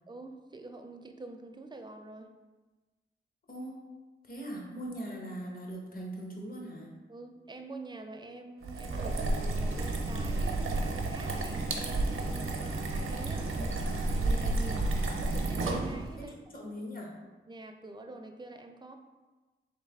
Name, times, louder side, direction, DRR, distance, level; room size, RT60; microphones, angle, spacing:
voice 1, 0.1-2.3 7.1-13.5 14.1-14.4 15.2-16.7 17.5-19.0, right 2 dB, 20° right, 5 dB, 0.4 m, -47 dB
voice 2, 3.5-3.8 4.2-6.9 13.4-14.9 16.2-17.2, equal, 45° left, -1 dB, 1.0 m, -41 dB
sound 1, 8.6-16.2, right 2 dB, 85° right, 0.6 m, -31 dB
3.5 x 3.2 x 3.5 m, 1.2 s
wide cardioid pair, 80°, 21 cm